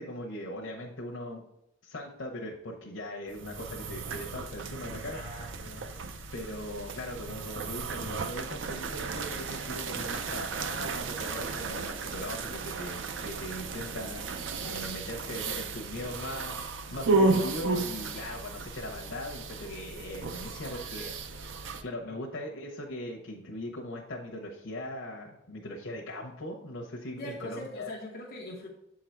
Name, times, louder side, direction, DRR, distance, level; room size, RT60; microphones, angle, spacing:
voice 1, 0.0-1.4 1.8-5.2 6.3-14.2 14.6-21.5 21.8-27.9, left 1 dB, 90° left, -1 dB, 0.9 m, -40 dB
sound 1, 3.3-21.8, right 3 dB, 80° right, 0.5 m, -34 dB
voice 2, 4.9-5.9 20.6-21.2 22.1-22.2 27.2-28.7, left 1 dB, 50° left, -2 dB, 0.8 m, -43 dB
7.5 x 3.8 x 4.5 m, 0.80 s
head